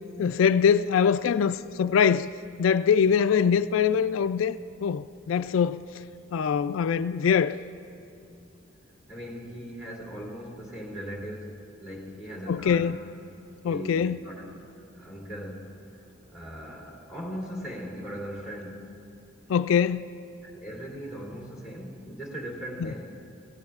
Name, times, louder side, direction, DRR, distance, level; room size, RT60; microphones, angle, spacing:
voice 1, 0.2-2.3 2.6-5.8 6.3-7.6 12.5-13.0 13.6-14.2 19.5-20.1 22.8-22.9, left 7 dB, 85° left, 0.3 m, -23 dB
voice 2, 9.1-12.9 13.6-14.5 14.9-18.9 20.4-23.1, equal, 5° right, 3.0 m, -39 dB
24.0 x 17.5 x 2.4 m
head